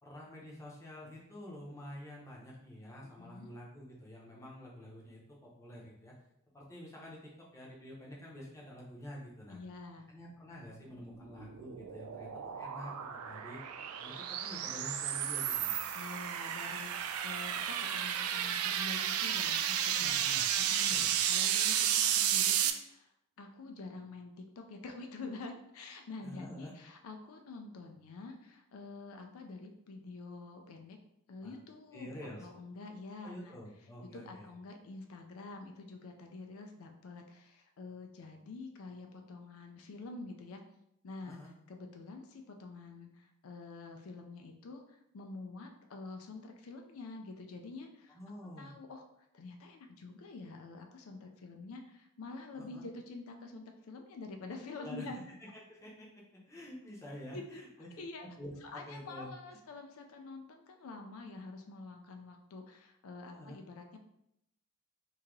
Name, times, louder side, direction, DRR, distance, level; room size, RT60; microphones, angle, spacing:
voice 1, 0.0-6.2 6.5-9.6 10.1-13.6 14.0-15.8 19.9-20.5 20.9-21.1 26.2-26.7 31.4-31.5 31.9-32.5 33.2-34.5 41.2-41.5 48.1-48.7 52.5-52.8 54.8-55.1 55.4-57.9 58.2-59.3 63.3-63.6, left 1 dB, 15° left, -4 dB, 0.7 m, -48 dB
voice 2, 3.0-3.5 9.5-10.1 15.9-20.2 20.6-31.0 31.3-32.1 32.4-33.6 34.0-40.6 41.0-41.4 41.7-48.2 48.6-49.0 49.3-55.2 57.3-57.6 58.0-58.3 58.6-64.0, left 3 dB, 75° left, 4 dB, 0.4 m, -47 dB
sound 1, 11.0-22.7, right 9 dB, 80° right, 0.3 m, -32 dB
3.0 x 2.8 x 3.6 m, 0.79 s
head